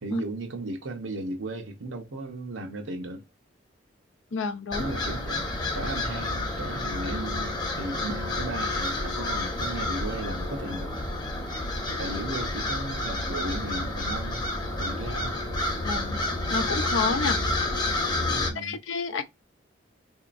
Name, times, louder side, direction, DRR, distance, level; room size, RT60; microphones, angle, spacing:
voice 1, 0.0-3.2 4.8-5.5 5.7-10.9 12.0-14.5 14.8-15.4 17.1-17.5 18.3-18.8, right 2 dB, 85° right, 0.9 m, -36 dB
voice 2, 4.3-4.9 15.8-16.2 16.5-17.4 18.6-19.2, left 4 dB, 85° left, 0.5 m, -29 dB
sound 1, 4.7-18.5, left 2 dB, 25° left, 0.8 m, -29 dB
3.9 x 2.8 x 2.5 m
head